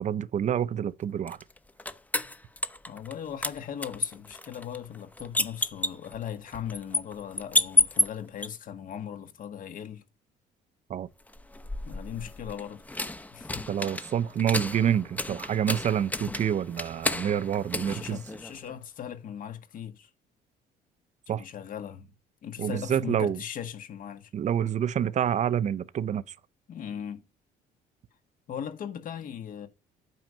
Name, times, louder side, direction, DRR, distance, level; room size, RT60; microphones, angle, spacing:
voice 1, 0.0-1.4 10.9-11.1 13.7-18.2 21.3-21.4 22.6-23.4 24.3-26.2, right 9 dB, 45° right, 0.7 m, -27 dB
sound 1, 1.3-3.2 3.4-8.5 11.3-18.8, left 2 dB, 10° left, 0.9 m, -31 dB
voice 2, 2.9-10.0 11.9-12.8 13.3-13.6 17.8-20.1 21.3-22.1 22.4-24.3 26.7-27.3 28.5-29.7, left 9 dB, 55° left, 1.7 m, -38 dB
9.2 x 6.5 x 5.7 m
cardioid pair, 110°, 17 cm